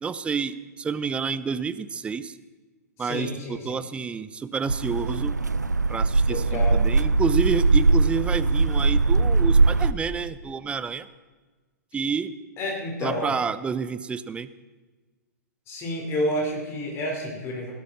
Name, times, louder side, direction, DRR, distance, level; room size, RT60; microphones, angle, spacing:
voice 1, 0.0-2.4 3.0-5.3 5.9-11.1 11.9-12.3 13.0-14.5, right 5 dB, 10° right, 14 dB, 0.5 m, -29 dB
voice 2, 3.0-3.8 6.3-6.8 12.6-13.3 15.7-17.7, left 1 dB, 30° left, 0 dB, 4.5 m, -30 dB
sound 1, 4.7-9.9, right 3 dB, 85° right, 0.4 m, -21 dB
17.0 x 12.5 x 4.3 m, 1.3 s
figure-of-eight pair, 105°, 9 cm